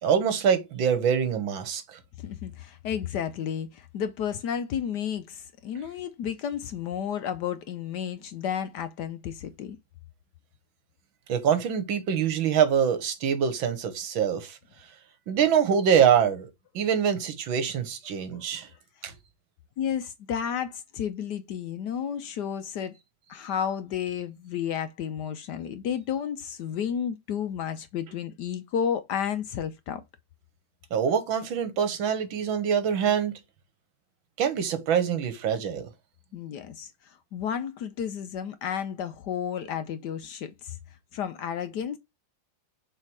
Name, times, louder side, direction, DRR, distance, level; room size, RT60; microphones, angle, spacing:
voice 1, 0.0-2.0 11.3-14.6 15.3-16.5 16.7-18.7 19.0-19.1 30.9-33.3 34.4-35.9, right 8 dB, 80° right, 1.9 m, -24 dB
voice 2, 2.2-9.8 18.3-18.4 19.8-22.9 23.3-30.0 36.3-40.8 41.1-42.0, left 8 dB, 70° left, 1.1 m, -32 dB
6.7 x 3.5 x 4.6 m
omnidirectional pair, 2.2 m